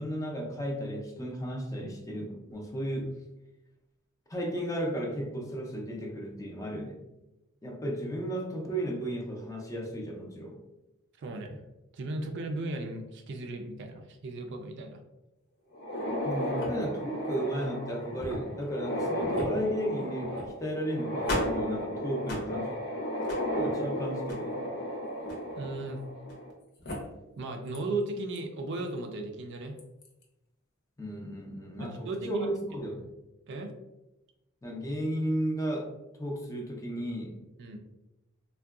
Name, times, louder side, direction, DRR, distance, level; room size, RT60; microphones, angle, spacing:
voice 1, 0.0-3.2 4.3-7.0 7.6-10.6 16.2-22.8 23.5-24.6 31.0-33.0 34.6-35.9 36.2-37.3, equal, 15° left, 0 dB, 0.5 m, -34 dB
voice 2, 11.2-11.6 11.9-15.0 25.6-26.0 27.4-29.8 31.8-32.5 33.5-33.7 37.6-37.8, right 2 dB, 60° right, 4 dB, 0.4 m, -36 dB
sound 1, 15.7-26.5 26.8-26.9 27.7-27.8 28.4-28.5 29.8-30.1, equal, 55° left, 0.7 m, -33 dB
3.6 x 2.2 x 2.3 m, 0.96 s
head